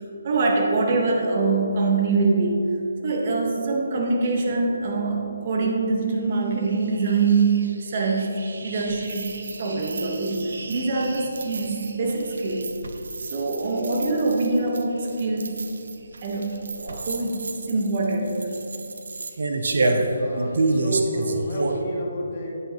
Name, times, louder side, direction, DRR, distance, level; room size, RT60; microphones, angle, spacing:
voice 1, 0.0-2.6 3.0-8.3 8.6-9.3 9.6-12.7 13.3-15.5 16.2-18.5, right 3 dB, 45° right, 0 dB, 1.5 m, -24 dB
sound 1, 6.4-21.8, right 3 dB, 70° right, 0.8 m, -30 dB
voice 2, 19.7-22.5, equal, 45° left, -2 dB, 1.7 m, -29 dB
9.6 x 8.9 x 3.1 m, 2.7 s
hypercardioid pair, 160°, 0 cm